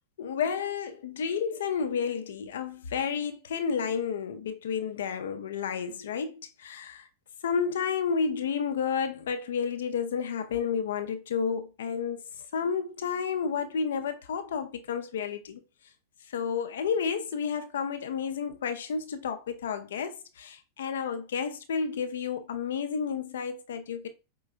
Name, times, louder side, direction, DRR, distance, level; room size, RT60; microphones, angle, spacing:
voice 1, 0.2-6.3 6.6-7.0 7.4-12.2 12.5-15.6 16.3-24.1, left 6 dB, 60° left, 0.4 m, -31 dB
5.0 x 2.2 x 2.4 m
figure-of-eight pair, 90°, 0 cm